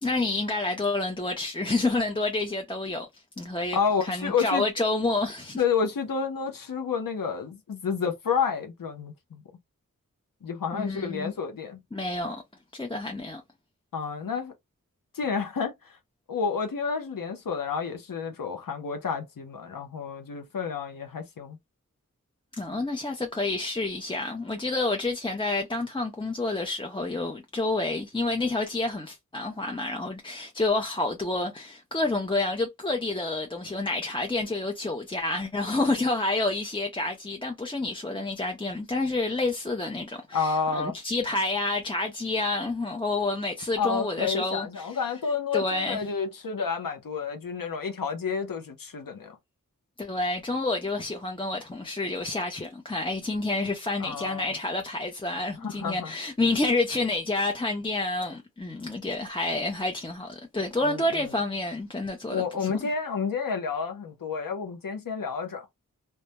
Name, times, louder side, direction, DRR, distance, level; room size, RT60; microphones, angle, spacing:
voice 1, 0.0-3.1 3.4-5.6 10.7-11.3 11.9-12.4 12.7-13.4 22.6-44.9 45.5-46.0 50.0-62.7, left 2 dB, 15° left, 0.5 m, -29 dB
voice 2, 3.7-4.6 5.6-9.4 10.4-11.8 13.9-14.5 15.1-16.0 16.3-21.6 40.3-40.9 43.8-49.4 54.0-54.5 55.6-56.1 60.8-61.3 62.3-65.7, left 6 dB, 85° left, 0.6 m, -30 dB
2.2 x 2.1 x 2.7 m
wide cardioid pair, 45°, 33 cm